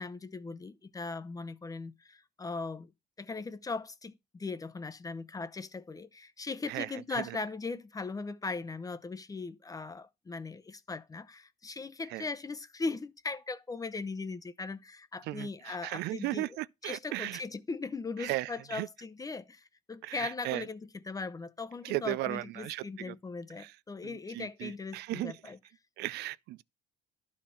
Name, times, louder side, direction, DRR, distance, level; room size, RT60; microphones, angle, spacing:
voice 1, 0.0-2.9 3.2-16.5 16.8-25.6, left 4 dB, 20° left, 0.7 m, -39 dB
voice 2, 6.7-7.4 12.1-12.3 15.2-17.4 18.2-18.9 20.0-20.7 21.8-23.1 23.6-23.8 24.0-25.4 26.0-26.6, right 18 dB, 75° right, 0.4 m, -36 dB
11.5 x 4.3 x 5.7 m
cardioid pair, 110°, 17 cm